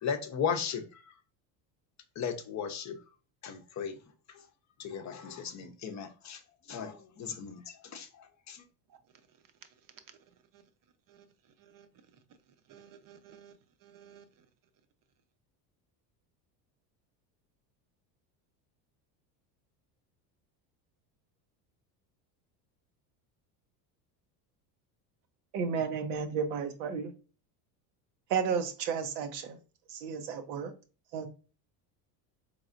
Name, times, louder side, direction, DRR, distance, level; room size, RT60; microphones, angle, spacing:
voice 1, 0.0-1.1 2.2-3.0 3.4-4.0 4.3-4.5 4.8-6.4 6.7-8.6, left 7 dB, 35° left, 0.6 m, -36 dB
voice 2, 12.7-13.5 13.8-14.5, right 8 dB, 40° right, 0.7 m, -55 dB
voice 3, 25.5-27.1 28.3-29.6 29.9-30.7 31.1-31.3, right 6 dB, 90° right, 0.9 m, -32 dB
4.0 x 3.2 x 2.5 m
supercardioid pair, 100°, 49 cm